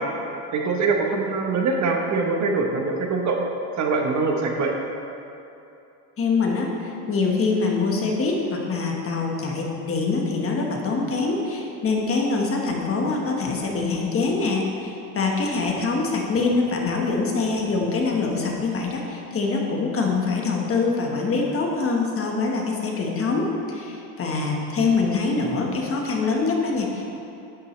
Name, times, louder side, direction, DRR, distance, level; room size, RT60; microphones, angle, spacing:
voice 1, 0.5-3.4 3.8-4.7, right 4 dB, 45° right, 1 dB, 1.1 m, -23 dB
voice 2, 6.2-27.0, left 4 dB, 35° left, 0 dB, 1.4 m, -24 dB
11.0 x 8.2 x 3.3 m, 2.8 s
cardioid pair, 125°, 41 cm